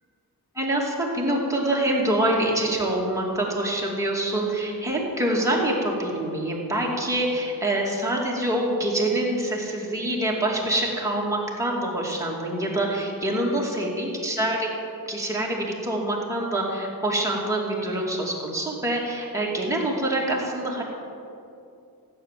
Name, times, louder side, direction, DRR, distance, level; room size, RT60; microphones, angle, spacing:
voice 1, 0.5-14.7 15.1-20.8, right 1 dB, 10° right, -4 dB, 2.5 m, -25 dB
16.0 x 9.1 x 7.5 m, 2.6 s
wide cardioid pair, 165°, 37 cm